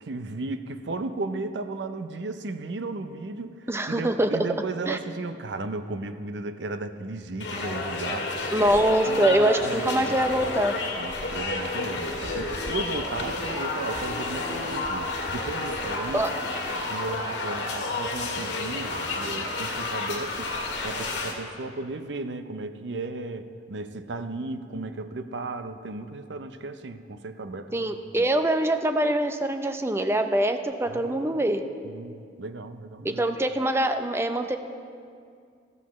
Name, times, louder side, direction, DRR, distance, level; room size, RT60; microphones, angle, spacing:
voice 1, 0.0-8.3 9.1-10.2 11.0-16.4 16.9-20.5 20.8-28.3 30.9-31.6 31.8-33.4, right 3 dB, 85° right, 10 dB, 0.6 m, -35 dB
voice 2, 3.7-4.3 4.9-5.0 8.5-10.7 16.1-16.3 27.7-31.6 33.0-34.6, right 1 dB, 15° right, 7 dB, 0.5 m, -24 dB
sound 1, 7.4-21.3, left 2 dB, 85° left, 1.7 m, -31 dB
14.5 x 14.0 x 3.1 m, 2.3 s
head